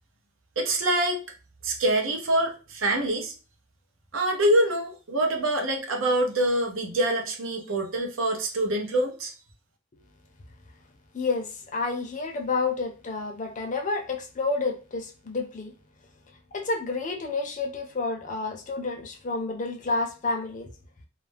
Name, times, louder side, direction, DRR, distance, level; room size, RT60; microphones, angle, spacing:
voice 1, 0.6-1.2 1.6-3.3 4.1-9.3, right 1 dB, 80° right, 0.7 m, -25 dB
voice 2, 11.1-15.7 16.5-20.7, left 3 dB, 40° left, 0.5 m, -30 dB
2.4 x 2.1 x 3.2 m
head